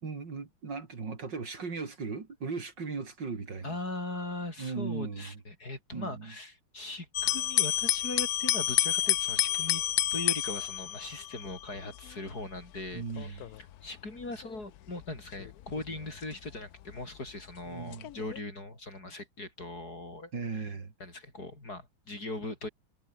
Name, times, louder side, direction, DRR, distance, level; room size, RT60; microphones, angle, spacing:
voice 1, 0.0-3.8 4.6-5.4 5.9-6.3 12.9-13.5 17.6-18.1 20.3-20.9, right 4 dB, 55° right, 3.5 m, -37 dB
voice 2, 3.6-9.8 10.1-13.5 13.8-20.3 20.6-20.7 21.0-22.7, left 2 dB, 45° left, 6.6 m, -40 dB
sound 1, 7.1-17.3 17.9-18.4, left 13 dB, 70° left, 0.9 m, -31 dB
omnidirectional pair, 2.3 m